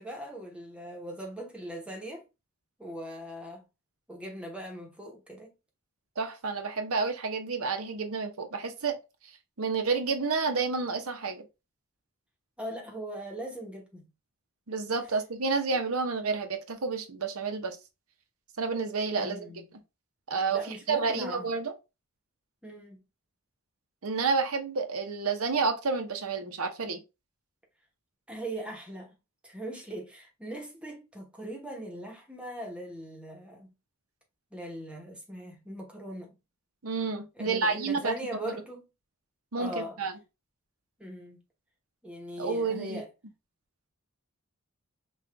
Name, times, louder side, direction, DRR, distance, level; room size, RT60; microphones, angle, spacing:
voice 1, 0.0-2.3 2.8-3.6 4.1-5.5 12.6-14.0 19.2-19.6 20.5-21.5 22.6-23.0 28.3-29.2 29.4-33.7 34.5-36.4 37.4-38.8 39.5-40.0 41.0-41.4 42.0-43.1, right 1 dB, 5° right, 1.1 m, -40 dB
voice 2, 6.2-9.0 9.6-11.5 14.7-17.8 18.6-19.4 20.3-21.7 24.0-27.0 36.8-38.1 39.5-40.1 42.4-43.0, right 4 dB, 75° right, 0.9 m, -30 dB
5.4 x 2.5 x 3.4 m
head